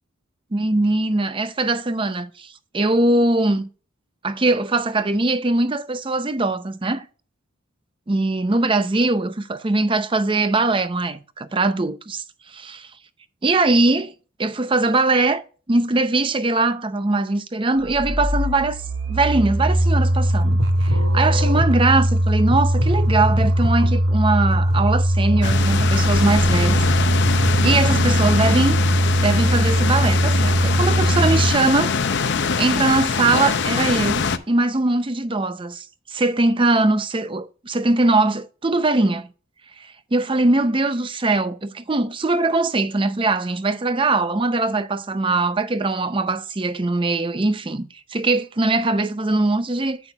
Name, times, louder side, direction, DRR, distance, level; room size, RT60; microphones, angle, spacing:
voice 1, 0.5-3.7 4.2-7.1 8.1-12.2 12.5-12.9 13.4-14.1 14.4-15.4 15.7-18.8 19.1-26.8 27.3-28.8 29.2-31.9 32.6-39.3 40.1-50.0, right 2 dB, 25° right, 0.5 m, -21 dB
sound 1, 17.8-31.5, equal, 55° right, 1.3 m, -19 dB
sound 2, 25.4-34.4, left 5 dB, 55° left, 0.6 m, -23 dB
9.8 x 8.9 x 2.3 m
head